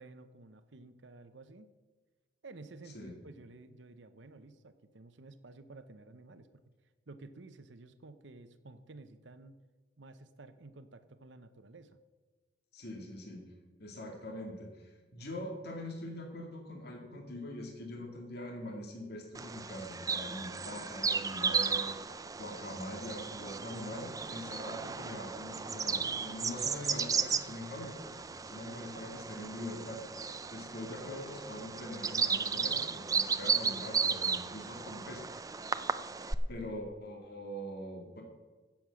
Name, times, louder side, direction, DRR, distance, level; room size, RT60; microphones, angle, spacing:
voice 1, 0.0-1.7 2.4-6.5 7.1-9.6 10.0-12.0, right 3 dB, 65° right, 11 dB, 0.8 m, -52 dB
voice 2, 12.7-13.4 13.8-28.0 28.4-30.1 30.5-35.7 36.5-38.2, left 1 dB, 55° left, 1 dB, 2.2 m, -43 dB
Bird vocalization bird call bird song, 19.3-36.3, right 5 dB, 20° right, 0.5 m, -35 dB
15.5 x 7.4 x 6.3 m, 1.3 s
head